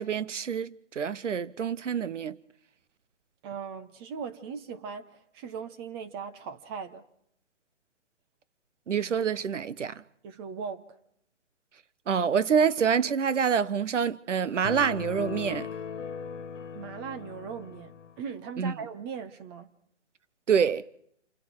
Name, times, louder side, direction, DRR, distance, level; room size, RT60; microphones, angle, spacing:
voice 1, 0.0-2.4 8.9-10.0 12.1-15.7 18.6-18.7 20.5-20.8, right 7 dB, 85° right, 1.0 m, -26 dB
voice 2, 3.4-7.0 10.2-10.9 16.7-19.7, right 6 dB, 20° right, 1.0 m, -39 dB
sound 1, 14.6-18.2, left 7 dB, 85° left, 1.5 m, -39 dB
28.0 x 22.5 x 4.7 m
hypercardioid pair, 150°, 35 cm